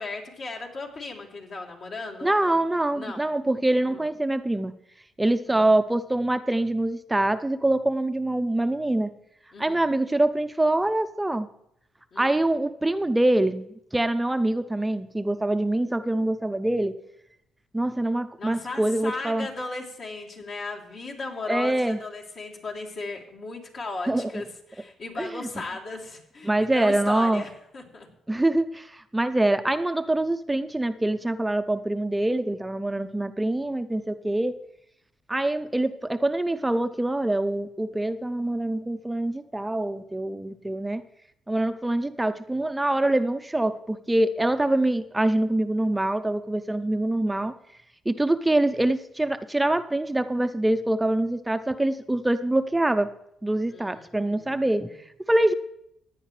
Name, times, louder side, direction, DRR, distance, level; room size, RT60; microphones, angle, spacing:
voice 1, 0.0-2.6 2.9-3.3 3.8-4.0 5.5-5.7 9.5-9.8 12.1-12.3 18.4-28.1 53.7-54.7, left 3 dB, 60° left, -2 dB, 3.1 m, -36 dB
voice 2, 2.2-4.7 5.2-9.1 9.6-11.5 12.2-16.9 17.7-19.5 21.5-22.0 24.1-24.3 25.2-25.4 26.4-27.4 28.3-34.6 35.3-41.0 41.5-47.5 48.1-53.1 53.4-54.9 55.3-55.5, right 1 dB, 10° right, 10 dB, 0.5 m, -24 dB
16.5 x 9.9 x 3.2 m, 0.78 s
cardioid pair, 90°, 0 cm